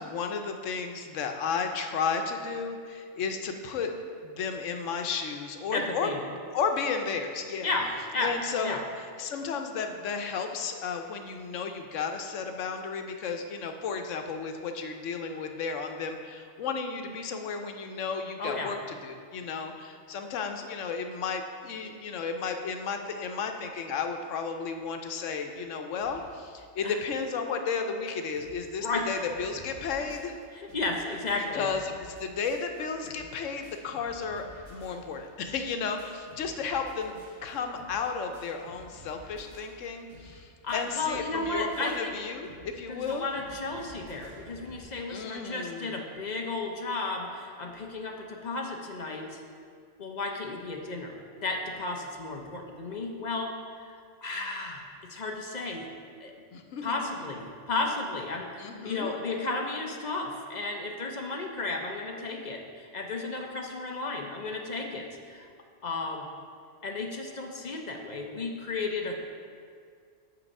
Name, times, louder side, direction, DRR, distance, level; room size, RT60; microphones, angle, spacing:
voice 1, 0.0-3.9 4.2-6.1 6.5-7.7 8.2-8.8 9.2-30.3 31.5-43.2 45.1-46.0 56.5-56.9 58.6-59.2, left 5 dB, 85° left, 5 dB, 1.1 m, -33 dB
voice 2, 5.7-6.2 7.6-8.3 8.6-8.8 18.4-18.7 26.8-27.0 28.8-29.1 30.5-31.7 40.6-42.1 42.9-49.4 50.0-53.5 53.8-53.9 54.2-55.9 56.2-56.3 56.8-65.5 65.8-66.3 66.8-69.1, left 3 dB, 45° left, 1 dB, 0.7 m, -33 dB
sound 1, 26.0-26.4 26.9-27.0 27.2-27.3 27.8-27.9 28.1-28.7 28.9-44.8, left 1 dB, 75° right, 1.6 m, -52 dB
7.3 x 5.7 x 5.3 m, 2.1 s
omnidirectional pair, 1.2 m